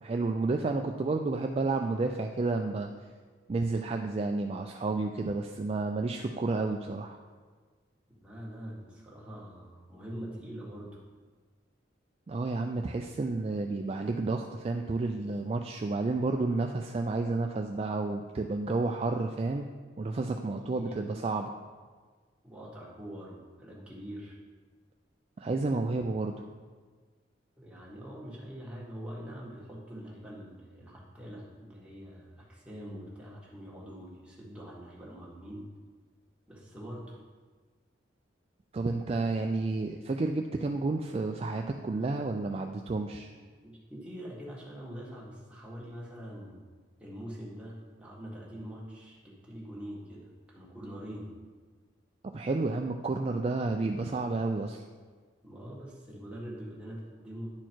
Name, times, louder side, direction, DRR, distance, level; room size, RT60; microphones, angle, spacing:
voice 1, 0.0-2.9 3.5-7.2 12.3-19.7 20.0-21.6 25.4-26.5 38.7-43.3 52.3-54.8, right 3 dB, 30° right, 3 dB, 0.3 m, -31 dB
voice 2, 8.2-11.0 20.5-21.1 22.4-24.4 27.6-35.7 36.5-37.2 43.3-46.6 47.0-51.3 55.4-57.5, equal, 5° right, -6 dB, 1.6 m, -44 dB
10.5 x 4.5 x 4.5 m, 1.5 s
head